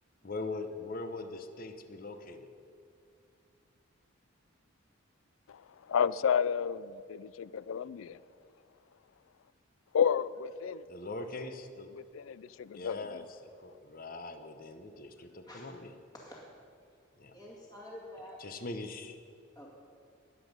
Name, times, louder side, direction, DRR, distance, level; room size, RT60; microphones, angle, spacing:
voice 1, 0.2-2.5 10.9-11.9 12.7-15.9 17.2-17.3 18.4-19.2, left 2 dB, 45° left, 8 dB, 0.9 m, -41 dB
voice 2, 5.9-8.2 9.9-10.8 12.1-13.0, left 7 dB, 80° left, 19 dB, 0.4 m, -30 dB
voice 3, 17.3-18.4 19.6-19.7, left 1 dB, 20° left, -3 dB, 2.1 m, -48 dB
21.0 x 8.1 x 5.3 m, 2.4 s
head